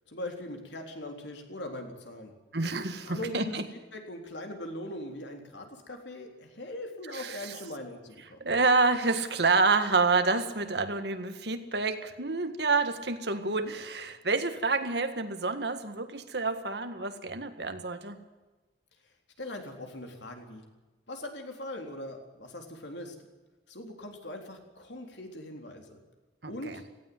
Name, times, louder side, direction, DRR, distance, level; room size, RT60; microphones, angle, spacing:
voice 1, 0.1-2.3 3.1-3.6 3.9-8.4 19.4-20.6 21.1-23.2 23.7-26.0 26.5-26.8, left 1 dB, 75° left, 3 dB, 3.8 m, -40 dB
voice 2, 2.5-3.7 7.1-7.5 8.4-18.2 26.4-26.8, right 3 dB, 60° right, 8 dB, 1.8 m, -28 dB
17.5 x 16.0 x 9.5 m, 1.2 s
head